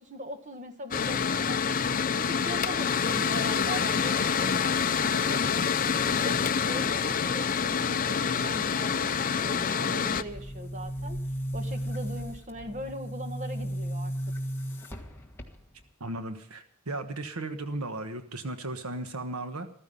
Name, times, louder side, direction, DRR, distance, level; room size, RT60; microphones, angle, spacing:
voice 1, 0.0-11.2 11.5-14.1, equal, 35° right, 6 dB, 1.7 m, -40 dB
Mechanical fan, 0.9-10.2, left 6 dB, 40° left, 0.6 m, -27 dB
Boom, 10.1-15.9, equal, 10° left, 1.6 m, -35 dB
voice 2, 16.0-19.7, right 2 dB, 80° right, 8 dB, 1.3 m, -36 dB
14.5 x 14.5 x 5.6 m, 0.63 s
head